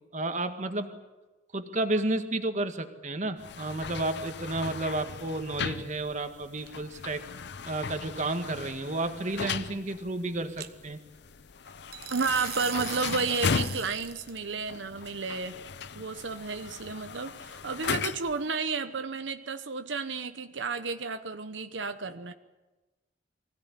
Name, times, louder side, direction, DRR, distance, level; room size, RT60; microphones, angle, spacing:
voice 1, 0.1-1.0 1.5-7.2 7.7-11.0, right 2 dB, 40° right, 7 dB, 1.8 m, -31 dB
sound 1, 3.4-18.5, left 5 dB, 65° left, 0.7 m, -37 dB
sound 2, 6.7-7.0 10.6-10.7 11.9-14.4, right 11 dB, 60° right, 1.2 m, -40 dB
voice 2, 12.1-15.6 16.0-22.3, right 4 dB, 90° right, 8 dB, 1.0 m, -32 dB
24.5 x 16.5 x 9.9 m, 1.2 s
head